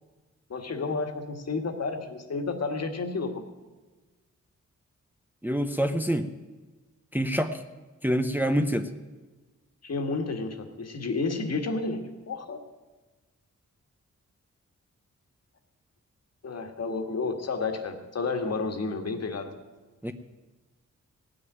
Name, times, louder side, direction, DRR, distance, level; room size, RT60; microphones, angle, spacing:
voice 1, 0.5-3.4 9.8-12.6 16.4-19.5, left 3 dB, 60° left, 5 dB, 1.8 m, -31 dB
voice 2, 5.4-6.3 7.1-7.6 8.0-8.9 20.0-20.1, equal, 5° right, 6 dB, 0.7 m, -26 dB
18.5 x 6.6 x 9.2 m, 1.3 s
wide cardioid pair, 135°, 30 cm